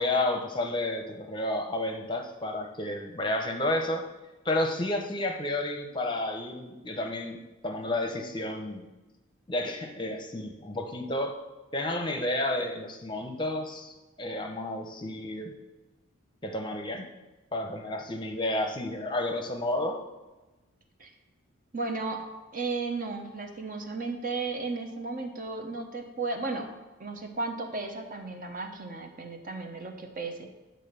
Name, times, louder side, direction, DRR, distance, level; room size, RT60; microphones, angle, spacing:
voice 1, 0.0-4.1 4.4-8.9 9.5-11.4 11.7-15.6 16.4-17.1 17.5-20.0, left 1 dB, 25° left, 4 dB, 0.7 m, -31 dB
voice 2, 21.7-22.2 22.5-26.7 27.0-30.5, right 3 dB, 40° right, 4 dB, 0.9 m, -34 dB
9.8 x 3.9 x 6.7 m, 1.1 s
head